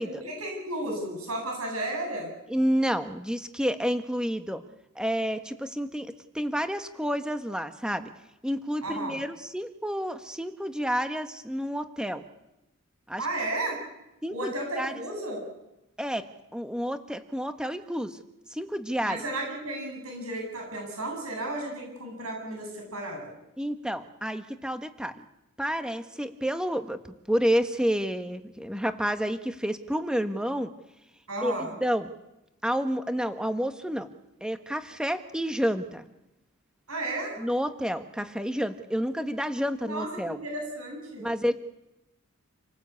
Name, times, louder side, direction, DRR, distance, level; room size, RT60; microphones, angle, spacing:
voice 1, 0.0-2.3 8.8-9.2 13.2-13.8 14.3-15.4 19.0-23.3 31.3-31.7 36.9-37.4 39.8-41.2, right 1 dB, 80° right, 1 dB, 8.0 m, -33 dB
voice 2, 2.5-4.6 4.9-8.1 8.4-12.2 13.1-13.2 14.2-14.9 16.0-18.2 18.5-19.2 23.6-25.2 25.6-27.0 27.3-30.7 31.4-32.1 32.6-34.1 34.4-36.0 37.4-40.4 41.2-41.5, equal, 5° right, 8 dB, 1.4 m, -29 dB
28.5 x 18.5 x 8.5 m, 0.91 s
head